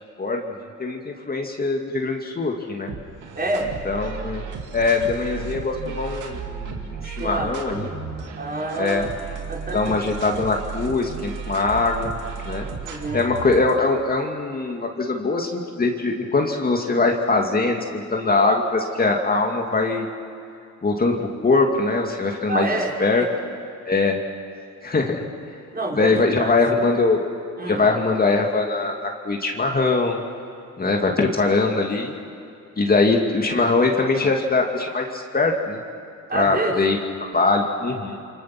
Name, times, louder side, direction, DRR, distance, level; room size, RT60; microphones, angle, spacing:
voice 1, 0.2-2.9 3.9-4.4 4.7-7.9 8.8-9.1 9.7-12.1 12.4-12.7 13.1-20.1 20.8-22.7 23.0-23.2 23.9-24.2 24.8-25.2 25.9-27.2 27.7-30.2 30.8-32.1 32.8-35.8 36.3-37.0 37.3-38.2, left 3 dB, 30° left, 1 dB, 2.5 m, -22 dB
sound 1, 2.9-13.7, right 6 dB, 90° right, 2.5 m, -34 dB
voice 2, 3.3-3.7 7.0-7.7 8.4-9.0 9.5-10.0 12.8-13.3 22.5-22.9 25.7-26.5 27.6-27.8 36.3-36.7, right 2 dB, 30° right, -1 dB, 5.0 m, -27 dB
28.5 x 25.0 x 6.1 m, 2.5 s
cardioid pair, 90°, 30 cm